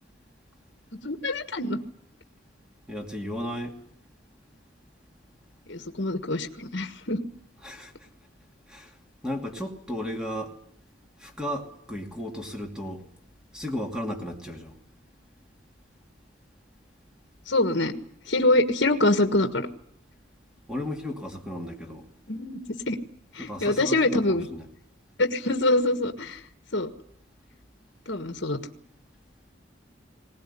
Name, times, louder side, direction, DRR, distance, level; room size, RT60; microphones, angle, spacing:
voice 1, 1.0-1.8 5.7-7.2 17.5-17.9 18.3-19.7 22.3-23.0 23.3-24.5 25.2-26.4 26.7-26.9 28.1-28.6, left 2 dB, 60° left, 1.5 m, -25 dB
voice 2, 2.9-3.8 7.6-8.1 8.7-9.0 9.2-10.6 11.2-13.1 13.5-14.8 20.7-22.1 23.4-24.7, equal, 5° right, 2.6 m, -34 dB
21.0 x 19.0 x 10.0 m
head